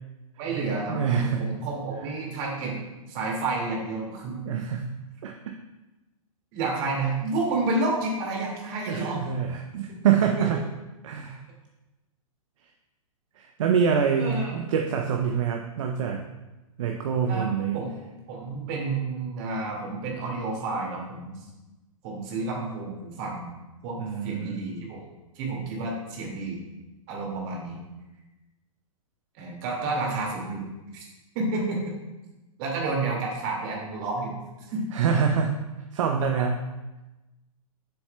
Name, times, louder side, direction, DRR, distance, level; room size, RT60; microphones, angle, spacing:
voice 1, 0.4-2.8 3.1-4.5 6.5-9.2 10.4-10.5 14.2-14.5 17.3-17.9 18.3-21.4 22.0-23.5 23.8-24.0 24.2-25.0 25.4-26.6 27.1-27.8 29.4-30.7 30.9-31.0 31.3-31.9 32.6-34.3 34.7-34.8, right 3 dB, 40° right, -2 dB, 2.1 m, -30 dB
voice 2, 0.9-1.4 4.4-4.8 5.2-5.3 8.9-10.6 11.0-11.4 13.4-16.2 16.8-17.8 24.0-24.6 34.9-35.5 35.9-36.6, right 7 dB, 60° right, 3 dB, 0.6 m, -25 dB
7.0 x 6.7 x 2.2 m, 1.1 s
hypercardioid pair, 115°, 18 cm